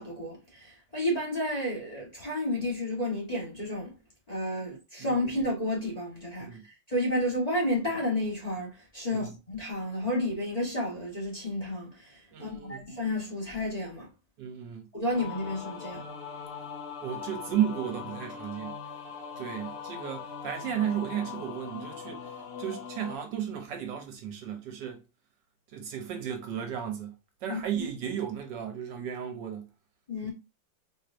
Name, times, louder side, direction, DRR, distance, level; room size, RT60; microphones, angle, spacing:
voice 1, 0.0-4.0 4.3-14.1 14.9-16.0 27.5-27.8 30.1-30.3, left 1 dB, 25° left, 1.1 m, -31 dB
voice 2, 12.3-12.8 14.4-14.9 17.0-18.7 19.4-25.0 25.7-27.1 27.4-29.7 30.2-30.3, right 9 dB, 75° right, 1.2 m, -34 dB
sound 1, 15.1-23.2, left 6 dB, 65° left, 1.8 m, -41 dB
4.4 x 3.0 x 2.5 m
omnidirectional pair, 2.1 m